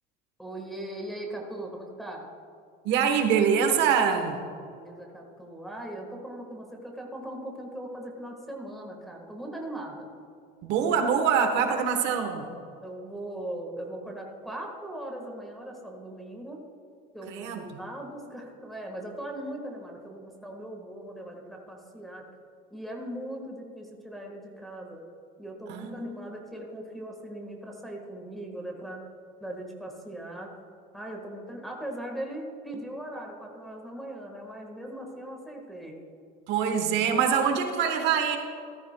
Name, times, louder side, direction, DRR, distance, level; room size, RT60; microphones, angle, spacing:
voice 1, 0.4-2.3 4.5-10.1 12.8-16.6 17.1-22.2 22.7-25.0 25.4-29.0 29.4-30.5 30.9-36.0, right 1 dB, ahead, -1 dB, 1.4 m, -39 dB
voice 2, 2.8-4.4 10.6-12.5 17.3-17.6 25.7-26.3 36.5-38.4, right 7 dB, 55° right, 5 dB, 1.1 m, -24 dB
14.5 x 14.0 x 2.2 m, 2.4 s
cardioid pair, 165°, 21 cm